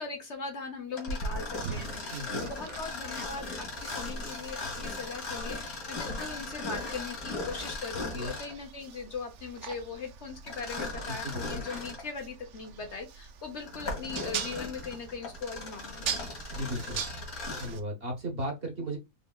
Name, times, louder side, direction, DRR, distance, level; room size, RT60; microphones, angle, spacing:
voice 1, 0.0-16.1, left 4 dB, 55° left, 1.2 m, -40 dB
Mechanisms, 0.9-8.6 10.5-12.1 12.6-12.7 13.4-17.8, left 2 dB, 75° left, 2.0 m, -38 dB
sound 1, 1.5-17.8, right 7 dB, 65° right, 0.9 m, -43 dB
voice 2, 2.1-2.5 8.1-8.3 11.1-11.6 16.5-17.0 17.6-19.0, right 1 dB, 45° right, 1.3 m, -36 dB
5.2 x 3.3 x 2.4 m
omnidirectional pair, 1.5 m